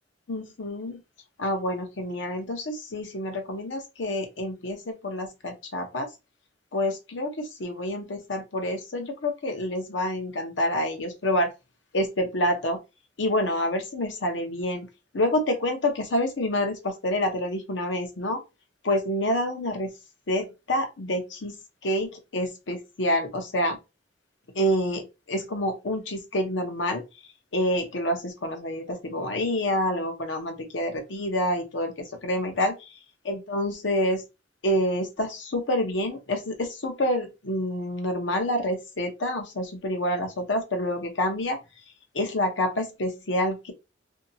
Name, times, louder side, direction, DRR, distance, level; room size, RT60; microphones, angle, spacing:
voice 1, 0.3-1.0 1.4-6.1 6.7-11.5 11.9-12.8 13.2-14.9 15.1-18.4 18.8-19.9 20.3-21.6 21.8-23.8 24.5-27.0 27.5-32.9 33.2-34.2 34.6-41.6 42.1-43.7, left 1 dB, 75° left, 0.8 m, -27 dB
2.8 x 2.7 x 2.6 m
head